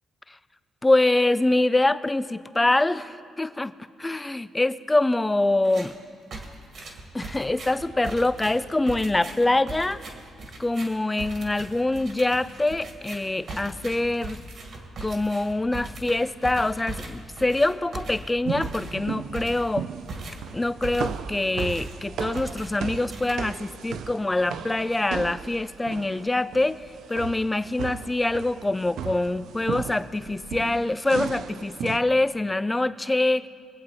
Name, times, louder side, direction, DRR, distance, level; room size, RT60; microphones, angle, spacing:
voice 1, 0.8-3.7 4.0-5.9 7.1-10.0 10.6-14.4 15.0-19.9 20.5-26.8 27.1-33.5, left 2 dB, 15° left, 15 dB, 0.4 m, -24 dB
sound 1, 5.6-6.0 6.3-21.3 21.6-22.0 22.3-23.8, right 3 dB, 60° right, 1.9 m, -39 dB
sound 2, 18.4-32.0, right 8 dB, 75° right, 0.5 m, -36 dB
22.0 x 7.7 x 4.1 m, 2.2 s
cardioid pair, 90°, 0 cm